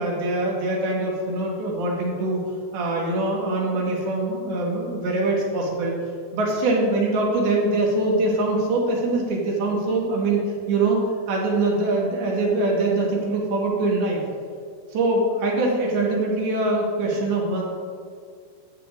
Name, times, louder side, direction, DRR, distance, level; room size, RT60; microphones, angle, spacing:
voice 1, 0.0-2.4 2.7-5.9 6.3-10.4 10.7-11.0 11.3-14.2 14.9-17.6, right 2 dB, 80° right, -2 dB, 3.4 m, -23 dB
13.0 x 8.5 x 2.6 m, 2.1 s
omnidirectional pair, 4.4 m